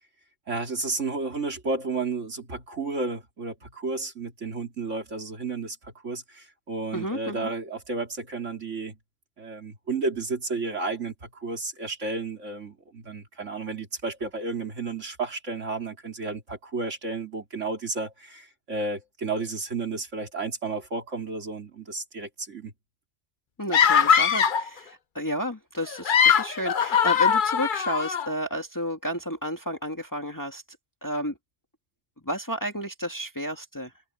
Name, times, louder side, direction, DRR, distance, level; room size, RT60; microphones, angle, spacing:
voice 1, 0.5-9.0 9.4-22.7, right 3 dB, 85° right, 3.5 m, -32 dB
voice 2, 6.9-7.5 23.6-30.6 31.0-31.4 32.2-33.9, equal, 15° left, 2.1 m, -31 dB
sound 1, 23.7-24.7 25.9-28.3, left 7 dB, 50° left, 0.8 m, -21 dB
omnidirectional pair, 1.2 m